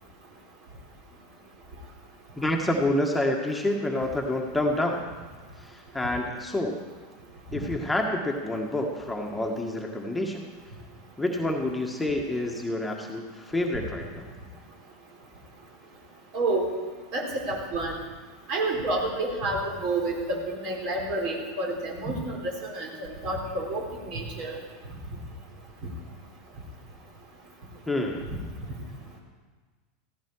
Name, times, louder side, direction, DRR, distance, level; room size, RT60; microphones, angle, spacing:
voice 1, 2.4-5.1 5.6-6.8 7.5-10.4 11.2-14.3 27.9-28.3, left 1 dB, 5° left, 0 dB, 1.7 m, -28 dB
voice 2, 16.3-16.7 17.1-18.0 18.5-23.8 24.1-24.6, right 2 dB, 55° right, 0 dB, 4.0 m, -29 dB
15.5 x 15.0 x 4.8 m, 1.4 s
figure-of-eight pair, 85°, 0 cm